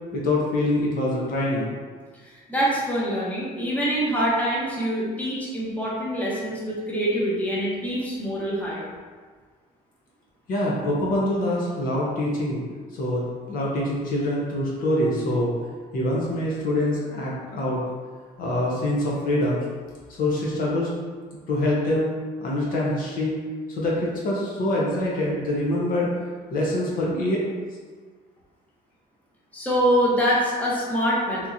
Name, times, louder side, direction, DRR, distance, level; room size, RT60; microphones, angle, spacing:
voice 1, 0.1-1.7 10.5-12.6 12.9-15.5 15.9-17.8 18.4-19.6 20.1-20.9 21.5-22.1 22.4-23.4 23.7-26.1 26.5-27.4, left 1 dB, 55° left, -4 dB, 0.8 m, -25 dB
voice 2, 2.2-8.9 29.5-31.5, equal, 10° left, -6 dB, 0.9 m, -25 dB
3.6 x 2.9 x 2.6 m, 1.5 s
cardioid pair, 110°, 17 cm